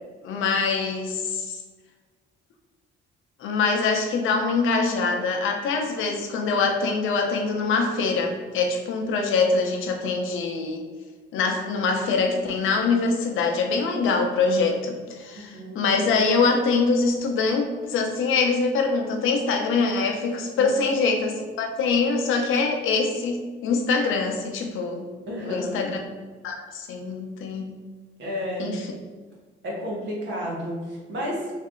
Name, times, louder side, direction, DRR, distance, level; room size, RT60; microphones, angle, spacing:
voice 1, 0.2-1.6 3.4-10.8 11.3-25.0 25.4-26.0 26.4-27.7 28.6-28.8, left 4 dB, 85° left, 3 dB, 0.6 m, -24 dB
voice 2, 15.3-15.8 20.6-20.8 25.3-25.8 28.2-28.7 29.6-31.5, equal, 65° right, -3 dB, 1.3 m, -31 dB
3.2 x 2.7 x 3.7 m, 1.4 s
cardioid pair, 90°, 20 cm